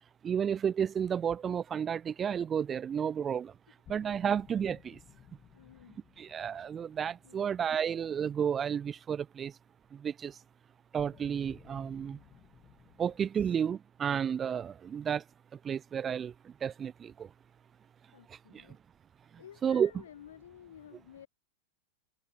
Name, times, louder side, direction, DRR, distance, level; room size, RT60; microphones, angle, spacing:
voice 1, 0.2-3.5 3.9-5.0 6.2-9.5 9.9-10.3 10.9-12.2 13.0-15.2 15.6-16.3 16.6-17.3 18.5-18.6 19.6-19.9, right 8 dB, 25° right, 0.4 m, -32 dB
sound 1, 3.8-8.9 11.0-13.2, left 11 dB, 30° left, 4.1 m, -58 dB
voice 2, 5.5-6.0 7.2-7.5 13.3-13.6 18.1-18.8 19.4-21.3, left 10 dB, 65° left, 0.7 m, -53 dB
figure-of-eight pair, 90°, 0 cm